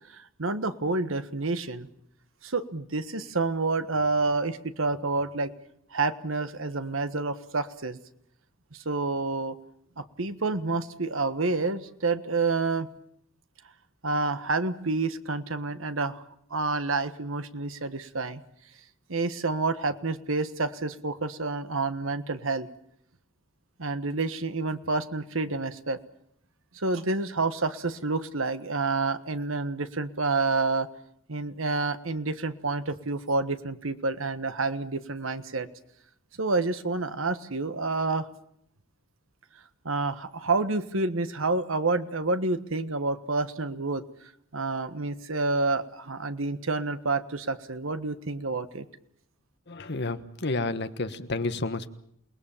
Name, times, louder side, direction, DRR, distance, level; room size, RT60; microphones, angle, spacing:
voice 1, 0.1-1.9 2.4-5.5 5.9-8.0 8.7-9.5 10.0-12.9 14.0-16.2 16.5-18.4 19.1-22.7 23.8-26.0 26.7-30.9 31.3-35.7 36.4-38.3 39.8-44.0 44.5-48.9, right 3 dB, 75° right, 11 dB, 1.4 m, -28 dB
voice 2, 49.7-51.9, left 2 dB, 55° left, 10 dB, 1.4 m, -30 dB
29.0 x 19.5 x 7.4 m, 0.71 s
head